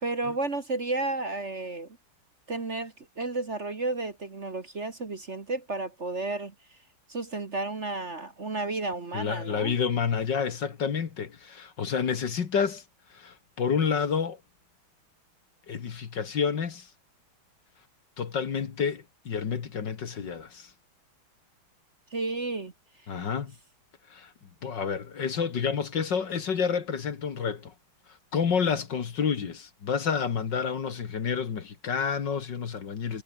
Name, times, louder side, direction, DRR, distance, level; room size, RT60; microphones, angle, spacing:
voice 1, 0.0-2.0 2.5-6.5 7.1-9.8 22.1-22.7, right 3 dB, 35° right, 1.9 m, -32 dB
voice 2, 9.1-12.8 13.1-14.4 15.7-16.9 18.2-20.7 23.1-23.5 24.1-24.3 24.6-27.7 28.3-33.2, left 6 dB, 55° left, 2.3 m, -29 dB
omnidirectional pair, 2.3 m